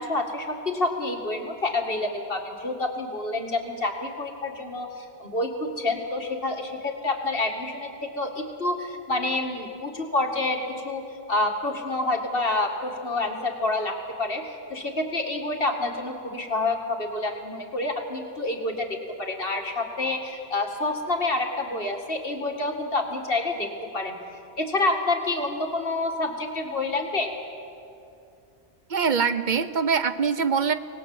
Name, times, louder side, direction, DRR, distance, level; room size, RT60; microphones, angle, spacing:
voice 1, 0.0-18.9 19.2-24.2 24.6-27.3, left 2 dB, 60° left, 3 dB, 2.4 m, -28 dB
voice 2, 28.9-30.7, right 6 dB, 50° right, 12 dB, 0.9 m, -23 dB
25.5 x 19.0 x 7.8 m, 2.6 s
omnidirectional pair, 1.1 m